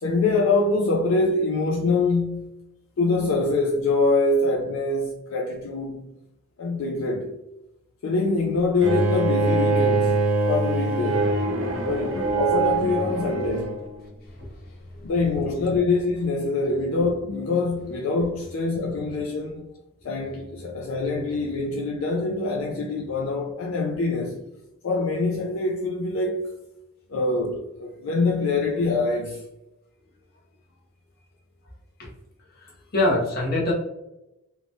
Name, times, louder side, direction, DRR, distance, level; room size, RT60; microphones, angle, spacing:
voice 1, 0.0-2.5 3.0-6.1 6.6-7.3 8.0-10.2 10.5-11.3 11.9-13.8 15.0-19.7 20.0-24.4 24.8-26.5 27.1-29.4, left 3 dB, 65° left, 0.4 m, -24 dB
Bowed string instrument, 8.8-13.9, right 2 dB, 70° right, 0.6 m, -23 dB
voice 2, 11.6-11.9 14.3-15.1 32.0-32.1 32.6-33.7, left 1 dB, 45° left, 0.8 m, -26 dB
3.0 x 2.1 x 2.6 m
head